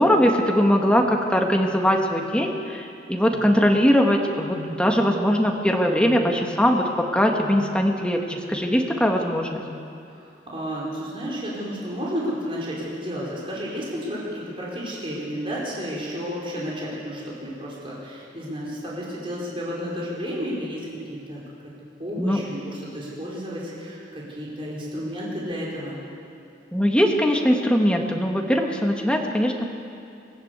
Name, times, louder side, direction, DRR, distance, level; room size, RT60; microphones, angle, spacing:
voice 1, 0.0-9.6 22.2-22.4 26.7-29.7, equal, 5° left, 1 dB, 1.8 m, -21 dB
voice 2, 3.3-3.7 10.1-21.4 22.0-26.0, equal, 30° right, -5 dB, 5.2 m, -32 dB
22.0 x 15.5 x 8.3 m, 2.6 s
head